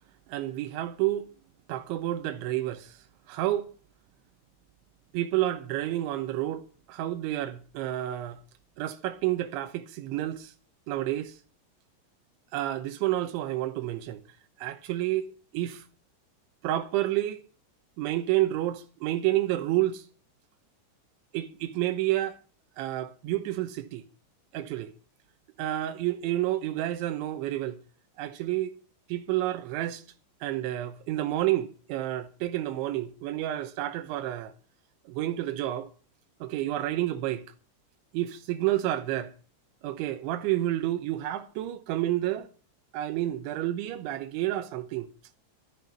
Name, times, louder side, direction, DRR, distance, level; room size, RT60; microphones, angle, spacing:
voice 1, 0.3-1.3 1.7-3.0 3.3-3.7 5.1-6.6 6.9-8.4 8.8-10.5 10.9-11.4 12.5-14.2 14.6-15.9 16.6-17.4 18.0-20.1 21.3-22.4 22.8-24.0 24.5-24.9 25.6-27.8 28.2-28.7 29.1-30.0 30.4-34.5 35.1-35.9 36.4-37.4 38.1-39.3 39.8-42.5 42.9-45.1, right 14 dB, 90° right, 3.3 m, -29 dB
13.0 x 12.5 x 5.3 m
omnidirectional pair, 5.3 m